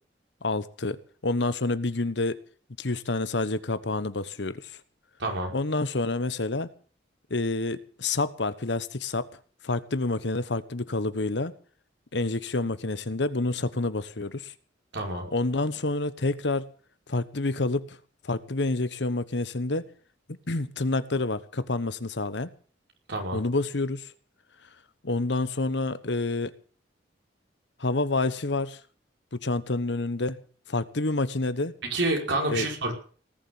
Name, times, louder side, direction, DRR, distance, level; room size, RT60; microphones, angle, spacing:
voice 1, 0.4-2.4 2.8-4.7 5.5-6.7 7.3-9.3 9.6-11.5 12.1-14.5 15.3-16.7 17.1-18.0 18.2-19.8 20.5-22.5 23.3-24.1 25.0-26.5 27.8-28.8 29.4-30.4 30.7-31.7 32.5-32.7, left 2 dB, 65° left, 14 dB, 1.2 m, -28 dB
voice 2, 5.2-5.5 14.9-15.3 23.1-23.4 31.9-32.9, right 2 dB, 75° right, 2 dB, 5.5 m, -28 dB
19.0 x 7.6 x 8.6 m, 0.42 s
head